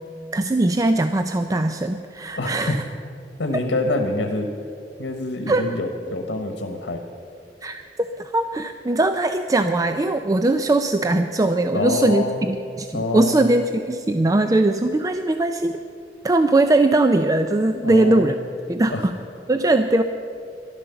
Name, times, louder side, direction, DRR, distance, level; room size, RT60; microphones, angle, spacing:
voice 1, 0.3-2.8 5.5-5.7 7.6-15.8 16.2-18.3 18.7-19.2 19.5-20.0, right 2 dB, 20° right, 8 dB, 0.4 m, -20 dB
voice 2, 2.4-2.8 3.4-4.5 5.0-7.0 11.7-12.4 12.9-13.4 17.8-18.3 18.9-19.1, left 2 dB, 85° left, 4 dB, 1.1 m, -26 dB
13.0 x 11.5 x 6.9 m, 2.5 s
head